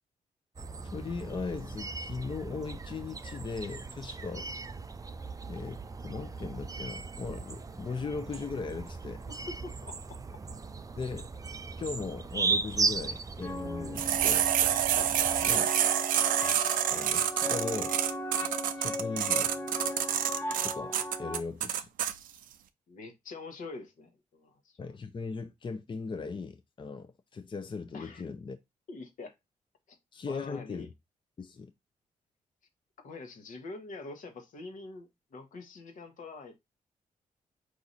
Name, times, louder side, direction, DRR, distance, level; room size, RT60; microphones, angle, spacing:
sound 1, 0.6-15.6, right 4 dB, 25° right, 0.4 m, -37 dB
voice 1, 0.9-4.5 5.5-9.2 11.0-11.3 11.8-14.5 15.4-15.7 16.9-17.9 18.8-19.5 20.6-21.9 24.8-28.6 30.1-30.9 31.4-31.7, left 4 dB, 35° left, 0.6 m, -38 dB
voice 2, 9.3-10.2 14.9-15.3 22.9-24.8 27.9-28.2 28.9-29.3 29.9-30.0 30.3-30.9 33.0-36.6, left 3 dB, 75° left, 1.3 m, -45 dB
sound 2, 13.4-21.4, left 1 dB, 15° left, 0.9 m, -38 dB
sound 3, 14.0-22.1, right 10 dB, 90° right, 0.4 m, -28 dB
4.8 x 2.7 x 4.0 m
cardioid pair, 65°, 14 cm